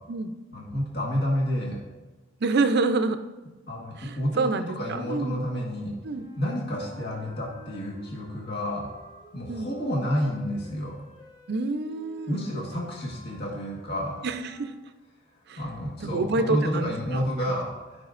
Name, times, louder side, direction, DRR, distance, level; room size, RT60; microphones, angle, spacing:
voice 1, 0.5-1.8 3.7-5.9 6.4-8.9 9.3-11.0 12.3-14.1 15.6-18.1, equal, 55° left, -4 dB, 1.5 m, -30 dB
voice 2, 2.4-3.2 4.0-5.4 6.0-6.3 9.5-9.7 11.5-12.4 14.2-14.7 15.5-15.6 16.0-17.3, right 3 dB, 55° right, 9 dB, 0.5 m, -27 dB
sound 1, 6.1-14.8, right 2 dB, 80° left, 2.9 m, -51 dB
15.0 x 5.4 x 2.5 m, 1.2 s
head